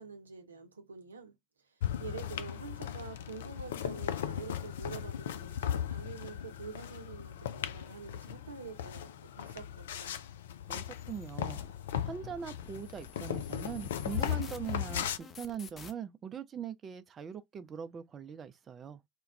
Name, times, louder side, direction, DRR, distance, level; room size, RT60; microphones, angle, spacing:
voice 1, 0.0-1.4 1.7-9.1 9.4-10.2, right 5 dB, 80° right, 0.6 m, -47 dB
sound 1, 1.8-15.2, left 10 dB, 70° left, 0.4 m, -37 dB
voice 2, 10.7-11.6 12.0-19.0, right 7 dB, 35° right, 0.4 m, -41 dB
sound 2, 10.9-15.9, left 6 dB, 35° left, 0.7 m, -52 dB
2.9 x 2.3 x 3.3 m
figure-of-eight pair, 65°, 0 cm